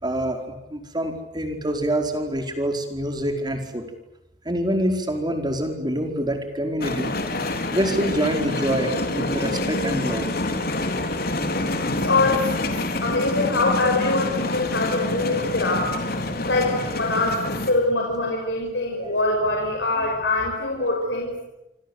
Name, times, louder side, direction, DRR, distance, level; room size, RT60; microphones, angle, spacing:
voice 1, 0.0-3.8 4.4-7.1 7.7-10.3 19.0-19.1, right 1 dB, 25° right, 5 dB, 4.8 m, -26 dB
sound 1, 6.8-17.7, left 2 dB, 55° left, 4.3 m, -27 dB
voice 2, 12.0-12.7 13.0-15.9 16.4-21.3, left 2 dB, 75° left, 0 dB, 5.9 m, -23 dB
28.5 x 25.5 x 8.2 m, 0.90 s
head